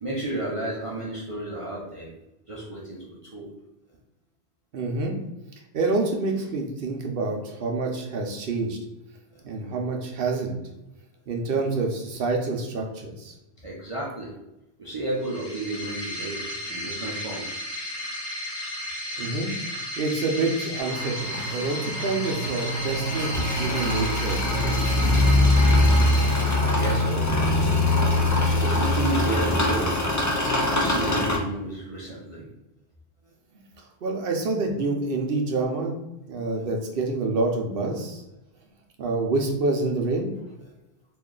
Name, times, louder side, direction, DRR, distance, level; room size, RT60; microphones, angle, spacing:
voice 1, 0.0-2.1 2.5-3.5 9.3-9.4 13.6-14.3 14.8-17.6 19.1-19.3 25.9-26.0 26.6-27.3 28.5-30.0 30.3-32.5, right 2 dB, 40° right, -5 dB, 0.6 m, -32 dB
voice 2, 4.7-5.1 5.7-8.8 9.4-10.5 11.3-13.3 19.2-24.9 34.0-36.0 36.3-38.2 39.0-40.3, right 3 dB, 65° right, 2 dB, 0.8 m, -27 dB
sound 1, 15.2-27.1, left 1 dB, 85° left, 1.2 m, -34 dB
sound 2, 20.8-31.4, left 1 dB, 30° left, 0.3 m, -23 dB
3.0 x 2.5 x 3.7 m, 0.91 s
omnidirectional pair, 1.0 m